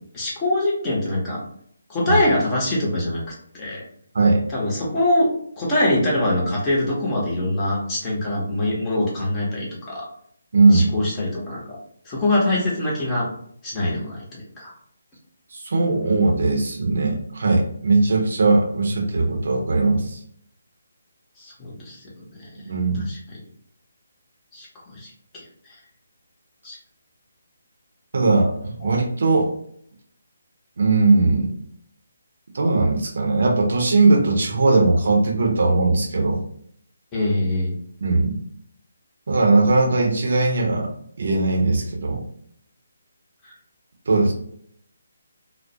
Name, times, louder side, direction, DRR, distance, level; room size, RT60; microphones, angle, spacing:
voice 1, 0.1-1.4 1.9-3.8 4.5-5.3 5.6-10.1 10.7-11.8 12.1-13.3 13.6-14.7 21.4-22.5 23.1-23.4 24.5-24.7 24.9-25.7 26.6-26.8 28.8-28.9 37.1-37.7 43.4-43.5, left 1 dB, 20° left, -5 dB, 0.8 m, -24 dB
voice 2, 4.1-4.4 10.5-10.9 15.5-20.2 22.7-23.1 28.1-29.5 30.8-31.5 32.5-36.4 38.0-38.4 39.3-40.9 41.2-42.2 44.1-44.3, right 3 dB, 55° right, 0 dB, 0.6 m, -19 dB
2.3 x 2.1 x 2.7 m, 0.66 s
figure-of-eight pair, 145°, 0 cm